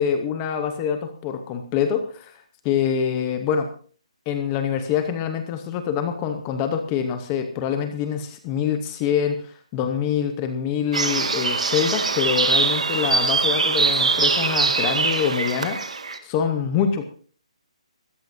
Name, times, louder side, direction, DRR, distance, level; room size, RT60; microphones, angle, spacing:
voice 1, 0.0-3.7 4.3-15.8 16.2-17.0, left 8 dB, 15° left, 7 dB, 0.7 m, -25 dB
sound 1, 10.9-16.2, right 4 dB, 75° right, 1.8 m, -22 dB
19.5 x 14.0 x 2.6 m, 0.42 s
hypercardioid pair, 180°, 4 cm